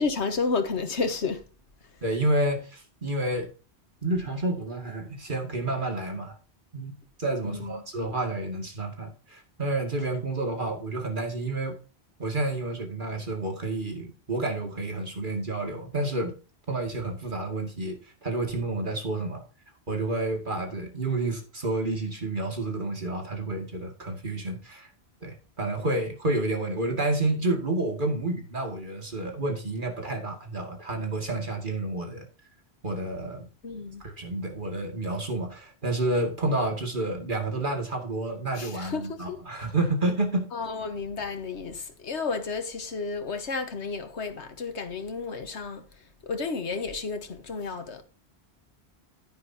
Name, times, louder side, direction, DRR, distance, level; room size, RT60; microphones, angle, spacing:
voice 1, 0.0-1.4 7.4-7.8 33.6-34.0 38.6-39.4 40.5-45.8 46.2-48.0, left 4 dB, 90° left, 1.6 m, -31 dB
voice 2, 2.0-3.5 4.0-6.4 6.7-6.9 7.2-11.8 12.2-16.3 16.7-19.4 19.9-24.9 25.2-32.3 32.8-33.5 34.0-40.5, right 2 dB, 50° right, 2.4 m, -29 dB
10.5 x 10.5 x 2.8 m
omnidirectional pair, 1.1 m